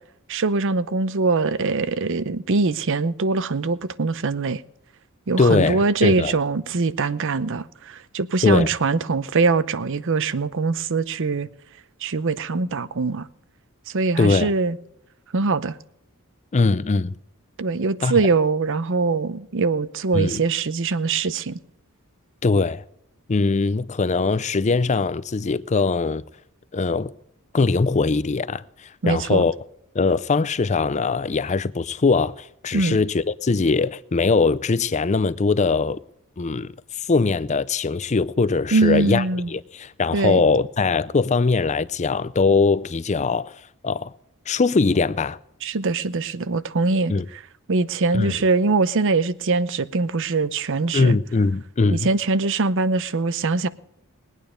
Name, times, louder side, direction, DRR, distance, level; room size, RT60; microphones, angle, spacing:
voice 1, 0.3-4.6 5.3-11.5 12.0-13.3 13.9-14.8 15.3-15.7 17.6-21.6 29.0-29.4 32.7-33.0 38.7-39.5 40.1-40.4 45.6-47.4 47.7-51.2 51.9-53.7, right 3 dB, 60° right, 0.7 m, -22 dB
voice 2, 5.4-6.3 8.4-8.7 14.2-14.5 16.5-17.1 18.0-18.2 20.1-20.4 22.4-22.8 23.3-26.2 26.7-27.1 27.5-29.5 29.9-36.0 36.4-43.6 43.8-44.1 44.5-45.4 47.1-47.3 48.1-48.4 50.9-52.1, left 4 dB, 30° left, 0.5 m, -21 dB
20.5 x 9.2 x 5.0 m
head